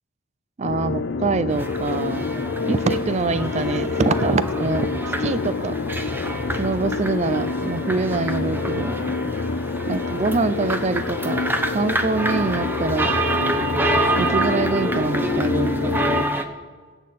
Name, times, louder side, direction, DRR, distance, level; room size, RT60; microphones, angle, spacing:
sound 1, 0.6-16.2, left 4 dB, 60° left, 0.5 m, -27 dB
voice 1, 0.6-2.3 2.7-4.9 5.2-5.8 6.6-9.0 9.9-11.4 11.7-13.1 14.2-16.0, right 3 dB, 35° right, 14 dB, 0.4 m, -24 dB
sound 2, 1.5-16.4, right 1 dB, 10° right, 0.8 m, -27 dB
22.5 x 8.3 x 4.2 m, 1.5 s
head